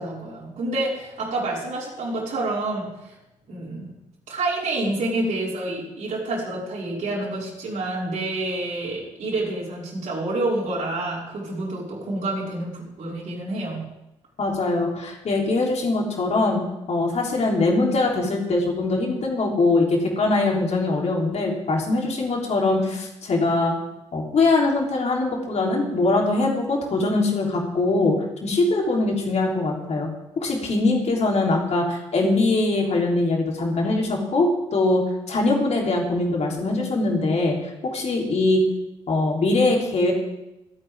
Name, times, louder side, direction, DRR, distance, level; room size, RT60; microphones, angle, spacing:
voice 1, 0.0-3.1 3.5-3.9 4.3-13.8, right 2 dB, 55° right, -6 dB, 5.6 m, -28 dB
voice 2, 14.4-16.6 16.9-23.8 24.1-30.1 30.4-38.6 39.1-40.1, left 2 dB, 45° left, 0 dB, 3.5 m, -22 dB
25.5 x 8.9 x 3.7 m, 0.91 s
figure-of-eight pair, 40°, 16 cm